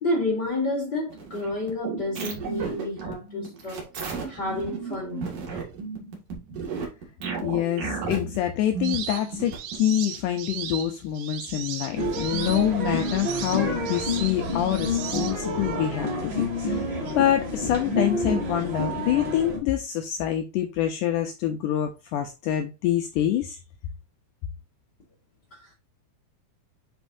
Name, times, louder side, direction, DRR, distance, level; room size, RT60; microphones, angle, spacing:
voice 1, 0.0-3.9 4.3-5.2 25.5-25.7, left 2 dB, 70° left, 1.0 m, -30 dB
sound 1, 1.1-9.8, right 5 dB, 55° right, 3.2 m, -34 dB
voice 2, 7.4-23.6, left 11 dB, 90° left, 1.8 m, -26 dB
sound 2, 8.8-15.7, right 9 dB, 75° right, 1.7 m, -37 dB
sound 3, 12.0-19.6, left 1 dB, 35° right, 2.1 m, -28 dB
10.5 x 4.5 x 2.6 m
omnidirectional pair, 4.5 m